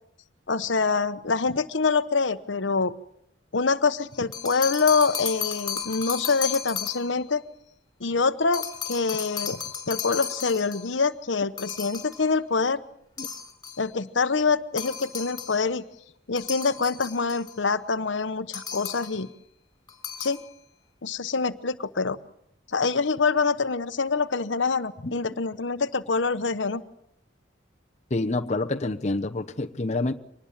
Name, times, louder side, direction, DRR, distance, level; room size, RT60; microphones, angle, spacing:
voice 1, 0.5-2.9 3.5-7.4 8.0-9.6 9.9-12.8 13.8-15.8 16.3-19.3 20.2-20.4 21.0-22.2 22.7-26.8, left 4 dB, 75° left, 1.0 m, -25 dB
sound 1, 4.1-7.2 8.5-11.0 11.6-12.3 13.2-13.9 14.8-15.6 16.4-17.6 18.5-19.2 19.9-20.5, left 7 dB, 20° left, 4.5 m, -34 dB
voice 2, 28.1-30.1, left 2 dB, 40° left, 0.9 m, -27 dB
24.5 x 19.5 x 7.3 m
head